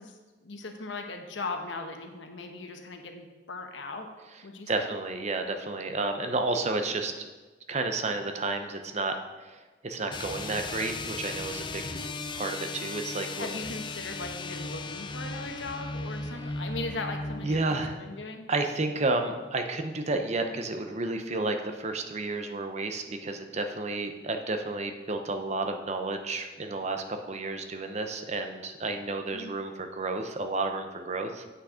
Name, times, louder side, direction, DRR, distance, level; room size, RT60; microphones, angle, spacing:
voice 1, 0.0-4.1 4.4-4.9 11.9-12.1 13.4-18.4 29.3-29.5, left 3 dB, 90° left, 4 dB, 1.1 m, -38 dB
voice 2, 4.7-7.1 7.7-11.8 12.4-13.5 17.4-18.0 18.5-31.4, right 3 dB, 40° right, 6 dB, 0.7 m, -31 dB
sound 1, 10.1-17.6, left 3 dB, 25° left, 0.4 m, -36 dB
8.4 x 6.2 x 5.0 m, 1.3 s
head